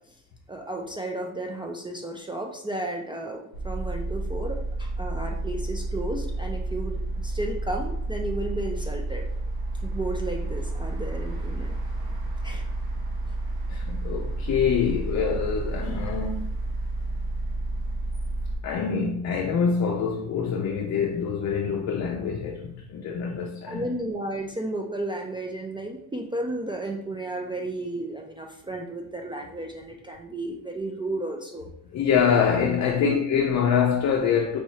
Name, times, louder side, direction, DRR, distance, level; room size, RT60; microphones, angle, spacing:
voice 1, 0.5-9.3 9.8-11.8 12.4-12.6 23.7-31.7 33.0-33.1, right 1 dB, 15° right, 0.3 m, -33 dB
sound 1, 3.5-18.6, right 2 dB, 80° right, 1.0 m, -30 dB
voice 2, 13.7-16.4 18.6-23.9 31.9-34.6, left 7 dB, 50° left, 0.5 m, -25 dB
4.6 x 2.7 x 3.1 m
cardioid pair, 120°, 37 cm